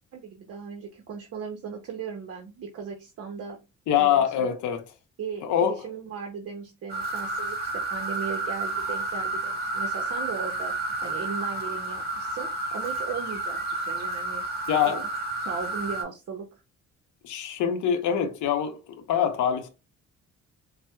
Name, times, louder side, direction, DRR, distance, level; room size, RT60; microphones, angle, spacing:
voice 1, 0.1-3.6 4.0-4.5 5.2-10.7 11.0-14.4 14.8-15.1 15.4-16.5, right 6 dB, 50° right, 0.7 m, -37 dB
voice 2, 3.9-4.8 5.4-5.8 14.7-15.0 17.2-19.7, left 9 dB, 80° left, 0.6 m, -24 dB
sound 1, 6.9-16.0, right 2 dB, 30° right, 1.4 m, -31 dB
4.2 x 2.0 x 2.2 m
cardioid pair, 90°, 30 cm